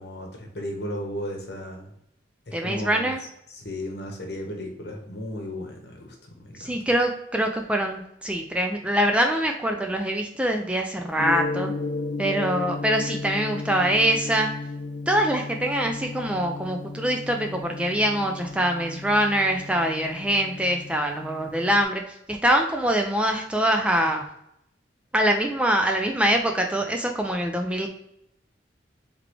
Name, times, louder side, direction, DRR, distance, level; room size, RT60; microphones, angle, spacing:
voice 1, 0.0-1.9 2.5-3.1 3.5-6.8, left 1 dB, 65° left, 2 dB, 1.1 m, -35 dB
voice 2, 2.5-3.2 6.6-11.7 12.2-14.5 15.1-22.0 22.3-24.3 25.1-27.9, right 1 dB, 5° right, 3 dB, 0.4 m, -24 dB
Gong, 11.2-21.8, left 3 dB, 85° left, 0.5 m, -34 dB
3.9 x 3.5 x 3.2 m, 0.76 s
head